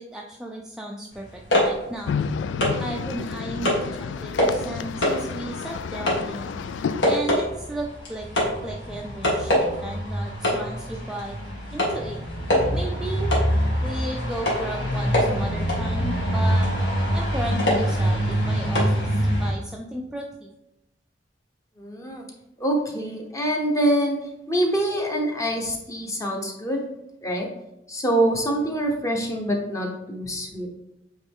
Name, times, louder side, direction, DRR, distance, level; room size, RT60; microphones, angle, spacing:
voice 1, 0.0-2.2 2.8-6.6 7.0-11.4 11.7-12.2 12.7-13.4 13.8-16.7 17.1-20.5, right 1 dB, 5° right, -1 dB, 0.4 m, -35 dB
sound 1, 1.2-2.9 3.3-3.9 4.3-4.7 5.0-19.5, equal, 70° left, 1.9 m, -24 dB
sound 2, 2.1-7.2, left 6 dB, 85° left, 0.3 m, -31 dB
voice 2, 21.8-22.3 22.6-24.2 24.5-26.8 27.2-27.5 27.9-30.7, right 1 dB, 15° left, 1 dB, 0.9 m, -25 dB
8.3 x 3.2 x 3.6 m, 0.90 s
head